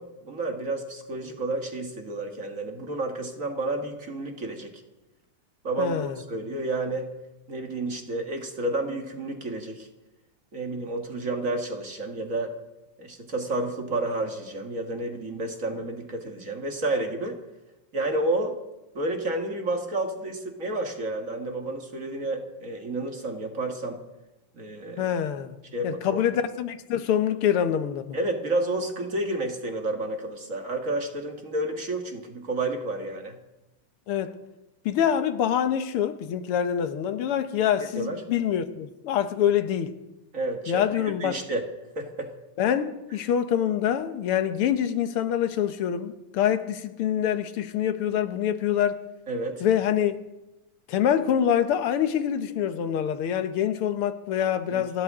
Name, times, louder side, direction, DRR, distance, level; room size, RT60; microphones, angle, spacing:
voice 1, 0.0-4.7 5.6-7.1 7.5-9.9 10.5-12.5 13.0-17.4 17.9-18.6 19.0-24.0 24.6-25.1 25.7-26.2 28.1-33.4 38.0-38.2 40.3-41.6 42.0-42.3 49.3-49.6 54.7-54.8, right 2 dB, 40° right, 1.8 m, -30 dB
voice 2, 5.8-6.2 25.0-25.6 25.8-28.2 34.1-34.4 34.9-40.0 40.7-41.4 42.6-49.0 49.6-50.2 50.9-55.0, left 9 dB, 80° left, 1.9 m, -25 dB
29.0 x 12.5 x 3.6 m
omnidirectional pair, 2.4 m